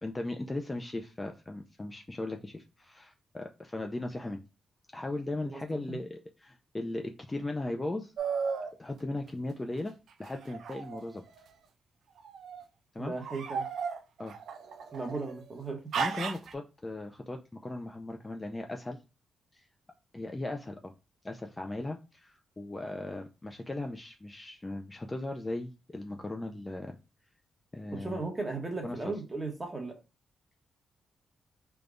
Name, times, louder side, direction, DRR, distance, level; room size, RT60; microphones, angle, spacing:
voice 1, 0.0-4.4 4.9-8.1 8.8-11.2 12.9-13.1 14.2-14.3 15.9-19.0 19.5-19.7 20.1-20.9 21.2-27.0 27.7-28.2 28.8-29.1, left 2 dB, 15° left, 0.3 m, -37 dB
sound 1, 8.2-8.7 10.2-11.4 12.2-12.6 13.2-15.3 15.9-16.5, right 6 dB, 70° right, 0.4 m, -35 dB
voice 2, 13.0-13.6 14.9-15.8 27.9-29.9, right 3 dB, 20° right, 1.0 m, -36 dB
3.4 x 2.2 x 3.7 m
wide cardioid pair, 140°, 0 cm